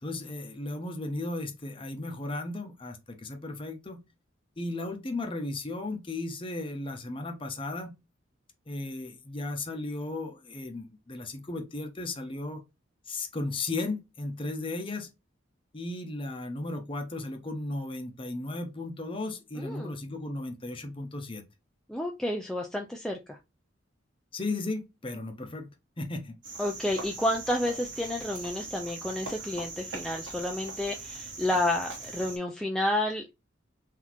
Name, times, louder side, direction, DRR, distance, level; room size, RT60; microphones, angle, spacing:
voice 1, 0.0-4.0 4.6-7.9 8.7-12.6 13.1-15.1 15.7-21.4 24.3-25.7 26.0-26.4, left 2 dB, 25° left, 0.7 m, -35 dB
voice 2, 19.6-20.0 21.9-23.4 26.6-33.3, left 1 dB, 5° left, 0.3 m, -30 dB
Cricket, 26.4-32.4, right 3 dB, 70° right, 1.3 m, -41 dB
4.0 x 2.7 x 3.0 m
head